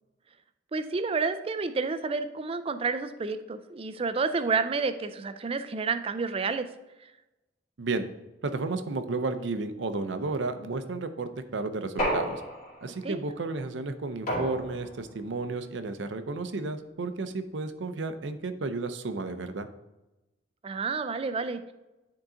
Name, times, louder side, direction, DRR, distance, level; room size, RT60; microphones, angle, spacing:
voice 1, 0.7-6.7 7.0-7.1 12.9-13.2 20.6-21.6, right 4 dB, 30° right, 11 dB, 0.4 m, -30 dB
voice 2, 8.4-12.4 12.8-19.7, right 3 dB, 75° right, 10 dB, 0.6 m, -32 dB
sound 1, 12.0-13.0 14.3-15.1, equal, 50° left, 2.1 m, -31 dB
9.8 x 3.8 x 3.8 m, 1.0 s
head